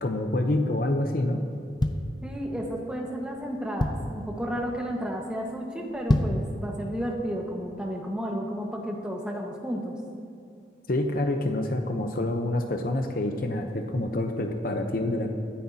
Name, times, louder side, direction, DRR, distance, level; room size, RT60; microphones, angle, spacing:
voice 1, 0.0-1.4 10.9-15.3, left 1 dB, 55° left, 4 dB, 0.8 m, -27 dB
sound 1, 1.5-2.8 3.3-3.4 3.5-4.3 4.7-5.0 5.3-5.4 5.9-6.5 7.0-7.1, left 1 dB, 25° left, 0.6 m, -27 dB
voice 2, 2.2-9.9, equal, 5° right, -1 dB, 1.4 m, -32 dB
24.0 x 10.0 x 2.8 m, 2.5 s
head